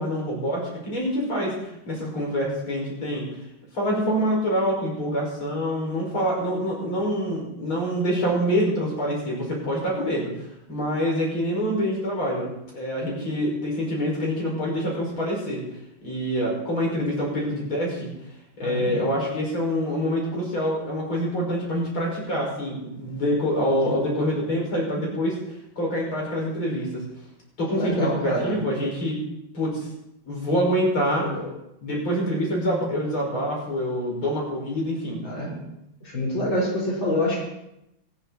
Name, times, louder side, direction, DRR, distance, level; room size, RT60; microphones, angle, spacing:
voice 1, 0.0-1.6 1.9-3.3 3.7-10.3 10.7-12.5 12.7-15.6 16.0-18.1 18.6-25.4 25.8-27.0 27.6-29.2 29.5-29.9 30.2-31.3 31.8-35.2, equal, 85° left, -2 dB, 6.3 m, -26 dB
voice 2, 18.6-19.1 23.9-24.0 27.7-28.6 31.2-31.5 35.2-35.6 36.0-37.4, left 1 dB, 70° left, -4 dB, 4.9 m, -27 dB
19.0 x 13.5 x 4.2 m, 0.84 s
omnidirectional pair, 2.2 m